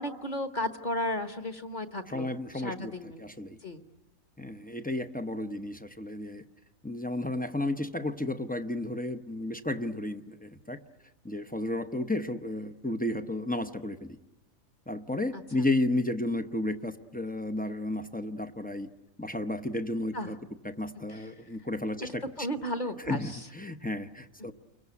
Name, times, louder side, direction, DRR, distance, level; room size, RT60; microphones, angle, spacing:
voice 1, 0.0-3.2 3.6-3.8 15.3-15.4 20.1-20.3 21.1-21.3 22.4-23.4 24.4-24.5, left 1 dB, 35° left, 7 dB, 1.3 m, -34 dB
voice 2, 2.1-2.9 3.2-3.6 4.4-6.4 6.8-10.8 11.2-14.2 14.9-18.9 19.2-20.4 20.6-22.2 23.1-24.5, left 1 dB, 10° left, 8 dB, 0.6 m, -32 dB
30.0 x 22.5 x 8.3 m, 1.0 s
omnidirectional pair, 1.4 m